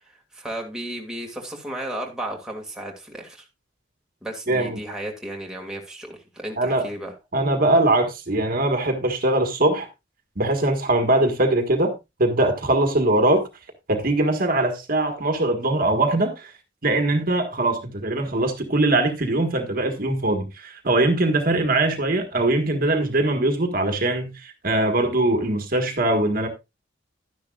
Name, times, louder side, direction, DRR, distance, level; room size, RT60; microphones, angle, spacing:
voice 1, 0.3-3.5 4.2-7.1, right 1 dB, 5° right, 2.1 m, -34 dB
voice 2, 4.5-4.8 6.6-6.9 7.3-9.9 10.4-11.9 12.2-13.4 13.9-16.5 16.8-26.5, right 2 dB, 50° right, 1.6 m, -21 dB
12.0 x 10.5 x 2.4 m
head